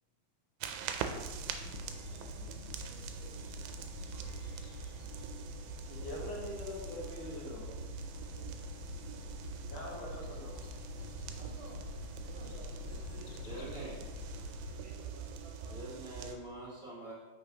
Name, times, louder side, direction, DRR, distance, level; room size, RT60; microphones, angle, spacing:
sound 1, 0.6-16.4, right 7 dB, 80° right, 2.3 m, -44 dB
sound 2, 1.0-14.8, left 3 dB, 85° left, 2.4 m, -46 dB
voice 1, 1.1-4.6 5.7-6.3 8.3-8.6 11.3-11.8 12.2-13.8 14.6-15.8, right 1 dB, 40° right, -4 dB, 2.0 m, -56 dB
voice 2, 5.9-7.7 9.7-10.5, left 1 dB, 65° left, -3 dB, 2.4 m, -43 dB
voice 3, 13.4-14.0 15.7-17.1, right 1 dB, 20° left, -9 dB, 1.8 m, -45 dB
9.5 x 5.8 x 2.9 m, 1.3 s
omnidirectional pair, 4.4 m